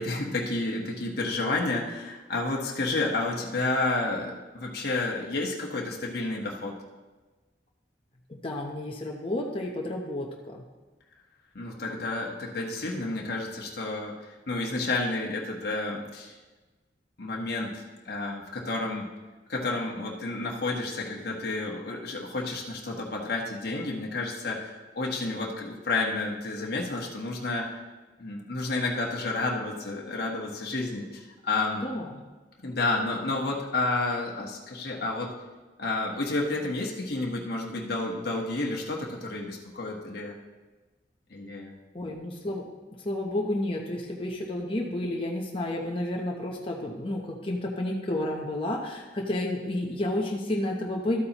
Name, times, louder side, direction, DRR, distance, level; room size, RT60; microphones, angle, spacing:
voice 1, 0.0-6.8 11.5-16.3 17.2-19.1 19.5-27.7 28.2-31.8 32.6-35.3 35.8-40.3 41.3-41.7, left 2 dB, 60° left, -1 dB, 1.2 m, -30 dB
voice 2, 8.3-10.6 31.8-32.2 41.9-42.7 43.0-51.2, left 1 dB, 30° left, -1 dB, 0.8 m, -31 dB
13.0 x 8.4 x 3.0 m, 1.2 s
head